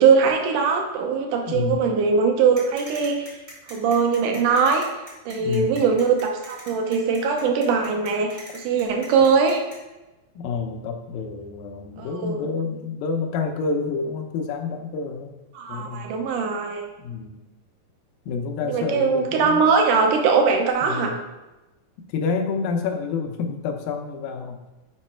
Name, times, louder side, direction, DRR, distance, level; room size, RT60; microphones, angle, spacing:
voice 1, 0.0-3.3 3.7-4.9 5.3-9.6 12.0-12.5 15.5-16.9 18.6-21.2, right 5 dB, 70° right, 3 dB, 2.1 m, -21 dB
voice 2, 1.5-1.8 5.4-5.8 10.4-15.3 15.7-16.1 17.0-17.4 18.3-19.6 20.8-21.2 22.1-24.6, left 5 dB, 75° left, 4 dB, 2.3 m, -28 dB
sound 1, 2.6-9.8, equal, 25° right, 1.0 m, -42 dB
7.2 x 5.2 x 4.4 m, 1.1 s
omnidirectional pair, 4.4 m